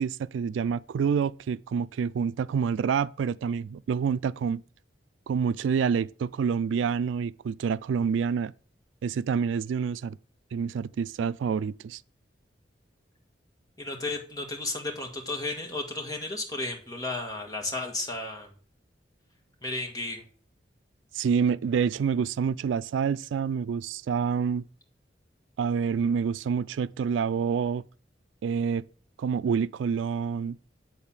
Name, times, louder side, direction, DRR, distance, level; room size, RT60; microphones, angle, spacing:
voice 1, 0.0-4.6 5.3-8.5 9.0-10.2 10.5-12.0 21.1-24.7 25.6-27.8 28.4-28.8 29.2-30.6, right 6 dB, 80° right, 0.3 m, -27 dB
voice 2, 13.8-18.5 19.6-20.2, left 2 dB, 20° left, 1.8 m, -33 dB
9.3 x 4.0 x 7.2 m
head